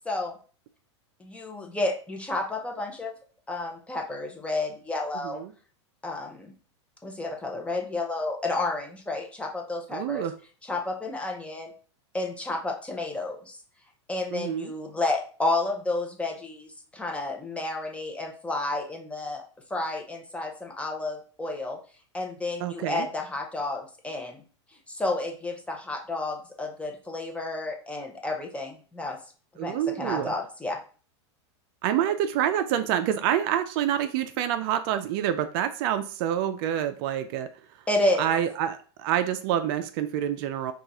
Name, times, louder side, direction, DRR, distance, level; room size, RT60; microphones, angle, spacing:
voice 1, 1.2-3.2 3.5-5.4 6.0-6.5 7.0-10.3 10.6-11.7 12.1-13.6 14.1-19.4 19.7-21.8 22.1-24.4 24.9-29.2 29.5-30.8 37.9-38.3, left 2 dB, 10° left, 2 dB, 0.7 m, -31 dB
voice 2, 9.9-10.3 14.3-14.7 22.6-23.1 29.6-30.3 31.8-37.5 38.2-40.7, right 10 dB, 50° right, 9 dB, 0.4 m, -27 dB
3.6 x 2.4 x 4.1 m, 0.40 s
supercardioid pair, 130°, 15 cm